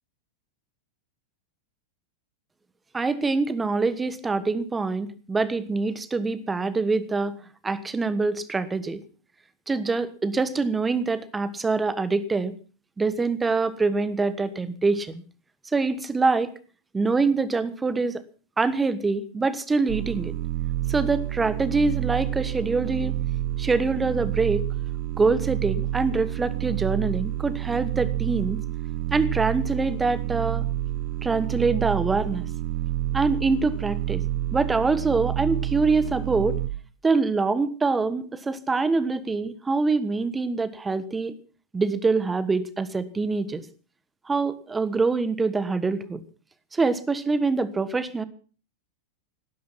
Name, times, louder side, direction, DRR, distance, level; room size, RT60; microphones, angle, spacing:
voice 1, 2.9-7.3 7.6-9.0 9.7-12.5 13.0-15.2 15.7-16.5 16.9-18.2 18.6-20.3 20.9-23.2 23.6-24.6 25.2-28.6 29.1-30.6 31.2-32.5 33.1-34.2 34.5-36.6 37.0-41.4 41.7-43.6 44.3-46.2 46.7-48.2, right 4 dB, 15° right, 15 dB, 1.4 m, -25 dB
sound 1, 19.9-36.7, right 14 dB, 45° right, 1.2 m, -29 dB
16.5 x 13.0 x 5.7 m, 0.39 s
figure-of-eight pair, 90°, 0 cm